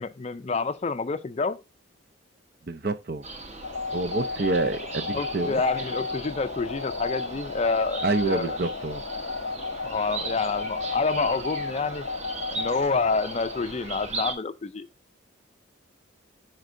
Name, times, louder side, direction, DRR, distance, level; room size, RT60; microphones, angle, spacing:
voice 1, 0.0-1.6 5.1-8.6 9.8-12.1 12.5-14.9, left 4 dB, 30° left, 0.4 m, -28 dB
voice 2, 2.7-3.2 3.9-5.6 8.0-9.0, right 2 dB, 50° right, 0.7 m, -27 dB
sound 1, 3.2-14.3, right 3 dB, 35° right, 1.1 m, -38 dB
sound 2, 3.6-13.7, left 4 dB, 85° left, 0.7 m, -33 dB
11.5 x 4.5 x 2.6 m
head